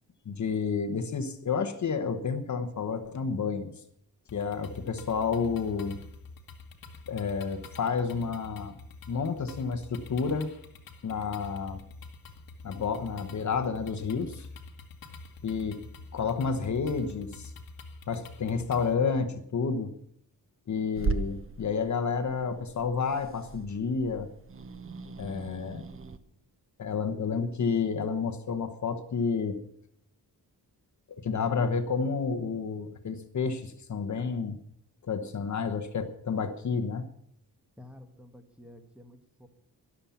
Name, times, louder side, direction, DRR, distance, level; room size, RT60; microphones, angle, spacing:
voice 1, 0.2-3.7 4.3-6.0 7.1-8.8 9.1-10.5 11.0-11.8 12.6-14.5 15.4-15.8 16.1-17.5 18.1-19.9 20.7-24.3 25.2-25.9 26.8-29.6 31.1-34.6 35.0-37.1, left 5 dB, 50° left, 8 dB, 1.1 m, -30 dB
sound 1, 4.3-18.9, left 3 dB, 65° left, 1.7 m, -47 dB
Growling / Hiss, 20.9-26.2, right 4 dB, 35° right, 0.9 m, -38 dB
voice 2, 37.8-39.5, left 1 dB, 5° right, 4 dB, 1.4 m, -51 dB
13.0 x 11.5 x 7.1 m, 0.69 s
wide cardioid pair, 160°, 38 cm